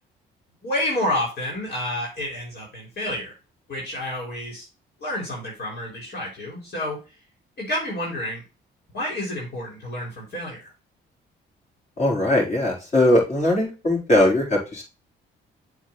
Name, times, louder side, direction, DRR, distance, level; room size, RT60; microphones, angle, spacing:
voice 1, 0.6-3.4 3.7-4.7 5.0-7.0 7.6-8.4 8.9-10.7, left 1 dB, 55° left, -2 dB, 3.5 m, -29 dB
voice 2, 12.0-14.8, left 1 dB, 35° left, -3 dB, 4.4 m, -20 dB
7.6 x 3.9 x 4.2 m, 0.31 s
cardioid pair, 90°, 20 cm